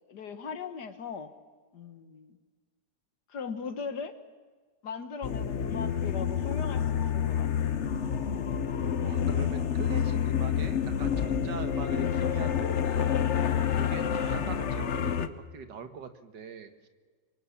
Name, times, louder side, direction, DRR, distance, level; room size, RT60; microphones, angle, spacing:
voice 1, 0.1-1.3 1.7-2.4 3.3-4.1 4.8-7.8, left 5 dB, 75° left, 10 dB, 2.0 m, -39 dB
sound 1, 5.2-15.3, left 8 dB, 50° left, 1.1 m, -28 dB
voice 2, 9.0-13.2 13.7-16.9, right 6 dB, 85° right, 9 dB, 2.1 m, -42 dB
25.5 x 23.0 x 7.3 m, 1.5 s
omnidirectional pair, 1.8 m